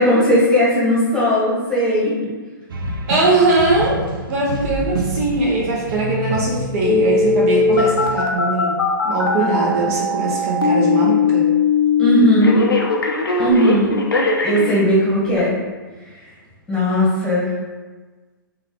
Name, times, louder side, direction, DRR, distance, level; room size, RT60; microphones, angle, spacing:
voice 1, 0.0-2.3 9.4-9.9 12.0-12.7 13.4-14.0 14.4-15.6 16.7-17.5, equal, 10° left, -8 dB, 1.1 m, -17 dB
sound 1, 2.7-8.2, right 2 dB, 75° right, 0.6 m, -28 dB
voice 2, 3.1-4.0 4.3-8.8 9.0-11.5, right 2 dB, 40° right, -4 dB, 0.8 m, -20 dB
Telephone, 6.8-14.8 15.4-15.5, left 4 dB, 85° left, 0.6 m, -19 dB
3.2 x 2.4 x 3.6 m, 1.3 s
hypercardioid pair, 120°, 12 cm